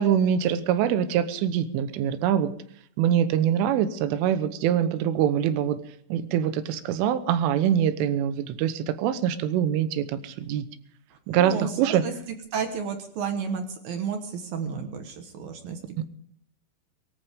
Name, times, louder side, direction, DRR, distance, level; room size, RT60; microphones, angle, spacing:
voice 1, 0.0-2.5 3.0-5.8 6.1-10.7 11.3-12.0 16.0-16.1, right 9 dB, 80° right, 12 dB, 3.5 m, -24 dB
voice 2, 11.3-12.1 12.5-15.8, right 6 dB, 65° right, 6 dB, 2.5 m, -32 dB
23.0 x 14.0 x 3.6 m, 0.67 s
omnidirectional pair, 5.7 m